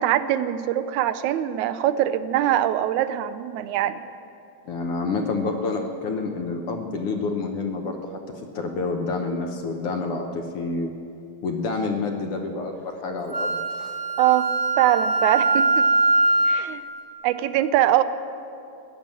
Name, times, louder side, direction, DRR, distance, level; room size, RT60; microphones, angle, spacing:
voice 1, 0.0-4.0 14.2-14.5 14.8-15.9 16.5-16.8 17.2-18.0, right 12 dB, 85° right, 12 dB, 2.0 m, -22 dB
voice 2, 4.7-8.0 8.3-10.9 11.4-14.0, left 3 dB, 65° left, 3 dB, 1.6 m, -28 dB
Wind instrument woodwind instrument, 13.3-16.7, right 2 dB, 30° left, 0.9 m, -22 dB
16.0 x 10.0 x 7.5 m, 2.6 s
omnidirectional pair, 3.3 m